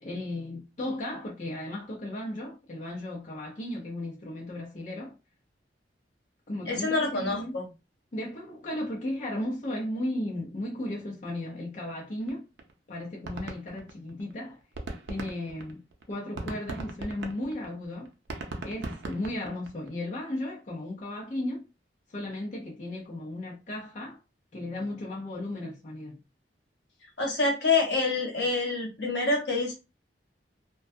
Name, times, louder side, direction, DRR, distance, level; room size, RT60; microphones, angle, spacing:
voice 1, 0.0-5.1 6.5-7.6 8.1-12.4 12.9-14.6 15.1-18.1 18.6-21.6 22.1-24.2 24.5-26.2, left 1 dB, 45° left, 0.6 m, -35 dB
voice 2, 6.7-7.6 27.2-29.7, left 3 dB, 75° left, 1.0 m, -26 dB
sound 1, 12.3-12.4 12.6-12.7 13.0-14.3 14.6-19.9, right 2 dB, 80° right, 0.5 m, -38 dB
2.2 x 2.2 x 2.6 m
head